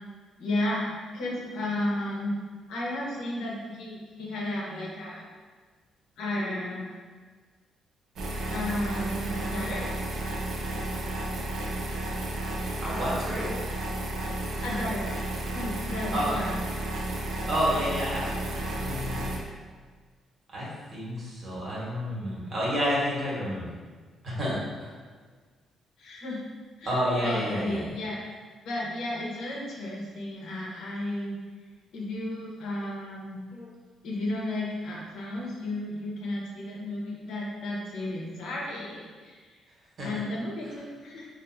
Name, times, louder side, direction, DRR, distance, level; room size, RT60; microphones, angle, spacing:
voice 1, 0.4-2.3 2.7-5.3 6.2-6.9 8.3-9.9 14.6-15.1 15.5-16.6 26.0-26.4 26.8-28.2 28.6-31.4 31.9-33.7 34.0-39.5 40.0-41.3, left 1 dB, 80° left, -4 dB, 0.8 m, -33 dB
sound 1, 8.2-19.4, right 1 dB, 70° right, 0.5 m, -32 dB
voice 2, 12.8-13.5 16.1-16.3 17.5-19.3 20.5-23.7 24.2-24.9 26.8-27.9 40.0-40.1, equal, 50° right, -7 dB, 1.4 m, -30 dB
3.4 x 2.6 x 2.6 m, 1.5 s
cardioid pair, 90°, 0 cm